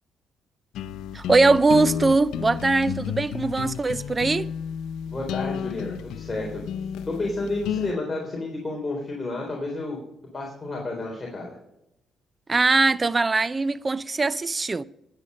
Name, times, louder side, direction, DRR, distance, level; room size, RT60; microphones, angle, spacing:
sound 1, 0.7-7.9, left 9 dB, 85° left, 0.6 m, -32 dB
voice 1, 1.1-4.5 12.5-14.8, right 3 dB, 25° right, 0.5 m, -21 dB
voice 2, 5.1-6.7 7.1-10.0 10.3-11.6, left 2 dB, 20° left, 3.7 m, -31 dB
18.5 x 8.8 x 5.4 m
cardioid pair, 90°, 0 cm